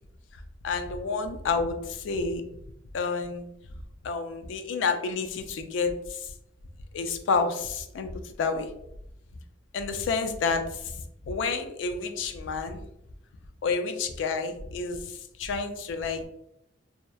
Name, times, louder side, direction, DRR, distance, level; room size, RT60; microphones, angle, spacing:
voice 1, 0.6-2.4 2.9-3.5 4.0-6.3 6.9-8.7 9.7-10.8 11.3-12.8 13.6-15.0 15.4-16.2, left 4 dB, 70° left, 7 dB, 0.3 m, -29 dB
2.8 x 2.1 x 2.2 m, 0.79 s
head